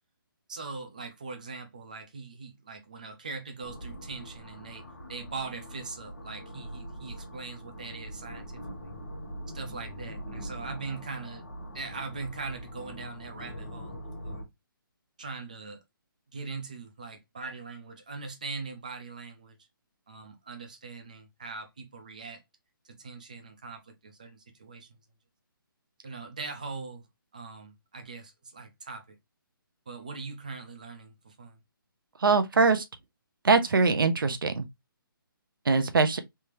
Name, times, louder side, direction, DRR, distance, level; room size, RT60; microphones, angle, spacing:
voice 1, 0.5-4.8 5.1-8.9 9.5-11.5 11.7-14.5 15.2-15.8 16.3-19.6 20.1-22.4 22.8-24.9 26.0-27.0 27.3-29.2 29.9-31.6, right 4 dB, 20° right, 0.4 m, -41 dB
industrial drone, 3.6-14.4, equal, 50° left, 1.3 m, -42 dB
voice 2, 32.2-32.8 33.4-34.6 35.7-36.2, right 4 dB, 65° right, 0.7 m, -22 dB
3.4 x 2.7 x 3.1 m
hypercardioid pair, 180°, 12 cm